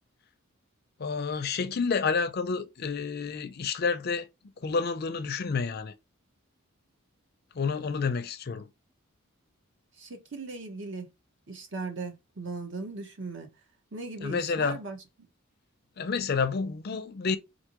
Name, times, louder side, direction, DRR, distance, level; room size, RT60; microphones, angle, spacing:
voice 1, 1.0-4.3 4.6-5.9 7.5-8.7 14.2-14.8 16.0-17.4, left 5 dB, 45° left, 0.5 m, -29 dB
voice 2, 10.0-11.1 11.5-13.5 13.9-15.0, right 3 dB, 55° right, 1.0 m, -38 dB
4.4 x 2.7 x 3.0 m
head